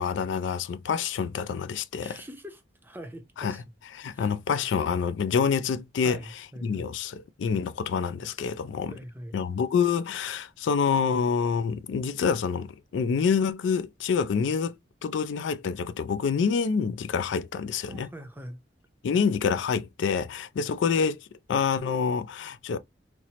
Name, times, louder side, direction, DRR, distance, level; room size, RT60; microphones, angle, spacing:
voice 1, 0.0-2.2 3.4-3.6 3.9-6.2 6.6-8.9 9.3-14.7 15.0-18.1 19.0-22.8, left 6 dB, 80° left, 0.3 m, -27 dB
voice 2, 2.0-3.6 4.1-4.3 6.0-6.9 8.9-9.4 17.9-18.6, equal, 10° right, 0.5 m, -42 dB
4.2 x 2.0 x 2.8 m
head